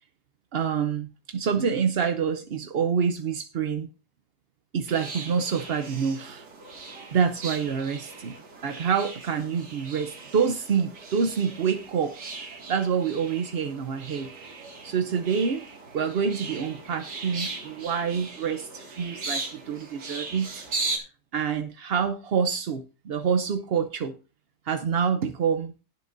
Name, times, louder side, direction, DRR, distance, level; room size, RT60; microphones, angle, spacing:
voice 1, 0.5-3.9 4.7-6.4 7.1-8.4 8.6-12.1 12.4-14.3 14.8-15.7 15.9-21.0 21.3-24.2 24.7-25.7, right 6 dB, 55° right, 8 dB, 0.7 m, -27 dB
sound 1, 4.9-21.0, right 3 dB, 85° right, 2.7 m, -38 dB
19.0 x 7.2 x 2.6 m, 0.32 s
omnidirectional pair, 1.7 m